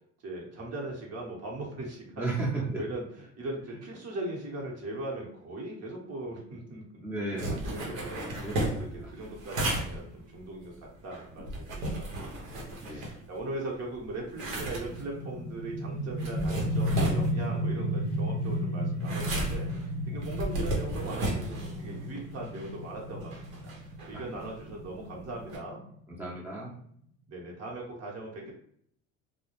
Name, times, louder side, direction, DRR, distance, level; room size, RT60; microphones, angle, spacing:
voice 1, 0.2-2.3 2.7-12.3 12.5-23.7 24.1-26.1 27.3-28.5, right 2 dB, 45° right, -2 dB, 0.9 m, -39 dB
voice 2, 2.2-2.8 7.0-8.1 8.4-9.3 12.8-13.0 20.1-20.2 24.1-24.3 26.1-26.7, right 2 dB, 5° right, -4 dB, 0.6 m, -35 dB
sound 1, 7.4-13.6 14.0-25.6, right 1 dB, 90° right, 0.8 m, -35 dB
sound 2, 14.9-26.3, equal, 50° left, 0.6 m, -33 dB
2.2 x 2.0 x 2.9 m, 0.67 s
supercardioid pair, 80°, 35 cm